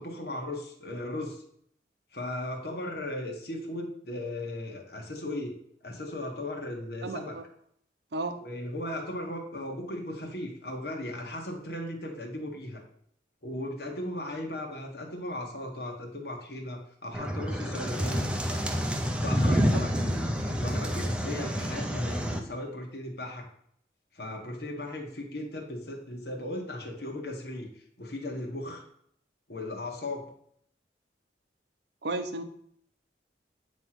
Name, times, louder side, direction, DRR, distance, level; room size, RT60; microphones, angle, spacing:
voice 1, 0.0-1.4 2.1-5.5 5.8-7.4 8.4-12.8 13.4-18.3 19.2-23.5 24.1-28.8 29.5-30.3, left 1 dB, 60° left, 0 dB, 1.4 m, -37 dB
voice 2, 7.0-7.4 8.1-8.4 19.5-19.8 32.0-32.4, right 2 dB, 70° right, 8 dB, 0.8 m, -34 dB
sound 1, 17.1-22.4, equal, 5° right, 0.6 m, -28 dB
9.0 x 3.2 x 5.8 m, 0.66 s
head